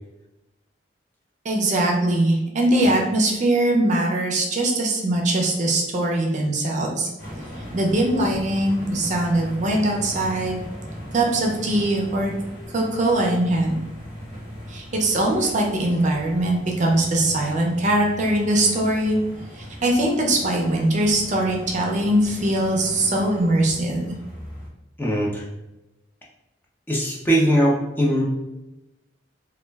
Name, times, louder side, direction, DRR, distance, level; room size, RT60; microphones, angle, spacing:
voice 1, 1.4-7.1 7.7-10.6 11.1-12.3 12.7-13.7 14.7-19.2 19.5-24.1, right 1 dB, 40° right, 0 dB, 0.5 m, -21 dB
sound 1, 7.2-24.7, equal, 50° left, 1.1 m, -38 dB
voice 2, 25.0-25.5 26.9-28.2, equal, 10° left, -4 dB, 0.4 m, -20 dB
2.2 x 2.1 x 3.3 m, 0.98 s
head